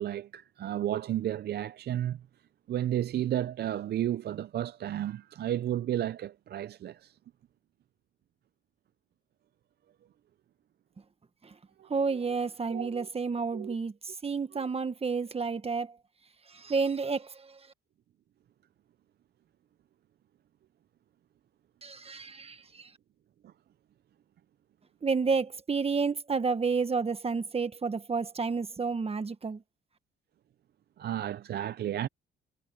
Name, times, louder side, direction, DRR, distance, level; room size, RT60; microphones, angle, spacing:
voice 1, 0.0-2.2 2.7-7.2 11.8-11.9 12.3-12.4 12.7-13.1 13.5-13.7 14.5-14.7 23.4-23.5 31.0-32.1, right 11 dB, 55° right, 0.5 m, -32 dB
voice 2, 11.9-16.0 16.5-17.6 21.8-22.9 25.0-29.6, right 5 dB, 30° right, 1.4 m, -30 dB
cardioid pair, 90°, 20 cm